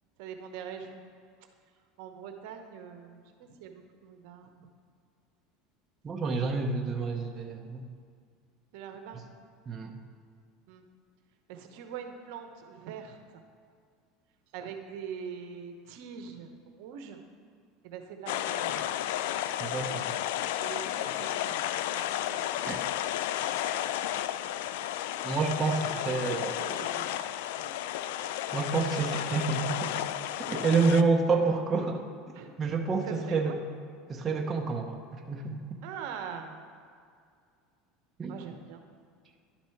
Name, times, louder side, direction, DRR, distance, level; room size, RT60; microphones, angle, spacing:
voice 1, 0.2-1.0 2.0-4.7 8.7-9.3 10.7-10.8 11.5-13.4 14.5-17.2 17.8-18.8 20.6-21.6 21.9-22.0 22.3-22.9 25.7-27.2 27.6-27.7 32.3-32.5 33.0-33.6 35.8-36.6 38.3-38.8, right 7 dB, 70° right, 5 dB, 0.9 m, -43 dB
voice 2, 6.0-7.9 9.7-10.0 19.6-20.1 22.7-22.8 25.2-26.6 28.5-30.0 30.4-32.0 32.6-33.6 34.1-35.6 38.2-38.4, right 4 dB, 25° right, 2 dB, 0.8 m, -28 dB
sound 1, 18.3-31.0, left 12 dB, 80° left, 0.3 m, -32 dB
10.5 x 4.3 x 5.7 m, 2.2 s
supercardioid pair, 130°, 0 cm